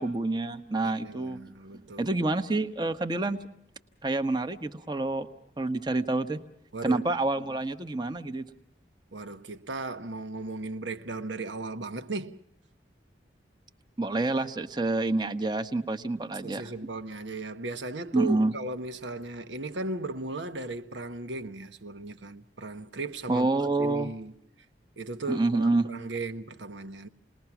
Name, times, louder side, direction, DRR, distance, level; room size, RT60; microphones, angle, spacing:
voice 1, 0.0-1.4 2.0-3.4 4.0-5.3 5.6-6.4 6.8-8.5 14.0-16.7 18.1-18.5 23.3-24.1 25.3-25.9, right 2 dB, 25° right, 1.0 m, -27 dB
voice 2, 0.8-2.3 6.7-7.0 9.1-12.4 16.4-23.5 23.8-24.3 25.0-27.1, right 2 dB, 80° right, 1.1 m, -36 dB
28.5 x 20.5 x 6.0 m
head